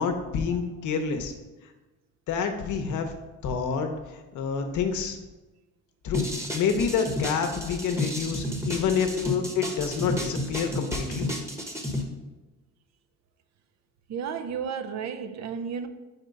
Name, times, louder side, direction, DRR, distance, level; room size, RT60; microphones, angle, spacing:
voice 1, 0.0-1.3 2.3-3.2 3.4-3.9 4.3-5.2 6.0-6.3 6.5-11.3, left 6 dB, 80° left, 0.8 m, -27 dB
sound 1, 6.1-12.0, left 1 dB, 10° right, 1.0 m, -31 dB
voice 2, 14.1-15.9, right 7 dB, 60° right, 0.6 m, -33 dB
4.5 x 4.2 x 5.2 m
cardioid pair, 90°, 30 cm